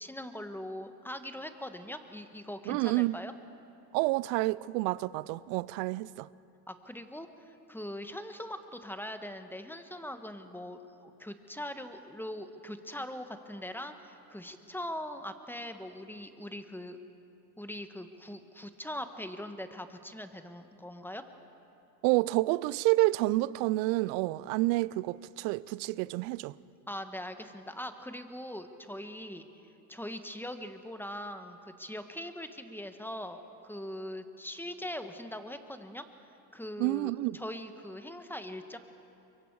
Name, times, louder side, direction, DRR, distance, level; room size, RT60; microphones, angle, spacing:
voice 1, 0.0-3.3 6.7-17.0 17.6-21.2 26.9-29.4 29.9-36.1 36.5-38.8, left 1 dB, 5° left, 1.3 m, -41 dB
voice 2, 2.7-3.2 3.9-6.3 22.0-26.5 36.8-37.4, right 20 dB, 65° right, 0.6 m, -29 dB
23.5 x 23.0 x 4.8 m
hypercardioid pair, 80°, 49 cm